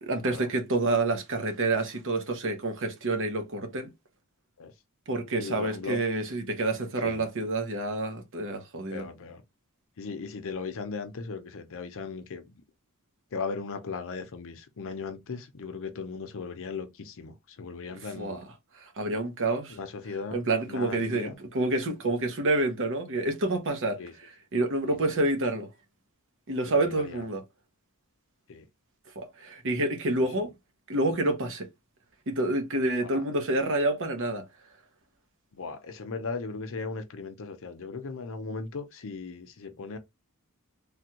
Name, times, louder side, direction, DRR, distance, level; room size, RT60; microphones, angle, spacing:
voice 1, 0.0-3.9 5.1-9.1 17.9-18.4 18.8-19.8 20.3-25.7 26.5-27.4 29.2-30.5 30.9-31.7 32.3-34.4, right 2 dB, 60° right, 0.9 m, -28 dB
voice 2, 5.4-6.0 7.0-7.2 8.9-9.4 10.0-12.5 13.3-18.4 19.7-20.4 20.7-21.4 24.0-24.1 24.9-25.0 26.9-27.2 28.5-28.6 33.0-33.2 35.6-40.0, left 4 dB, 65° left, 0.6 m, -37 dB
3.4 x 2.3 x 2.8 m
head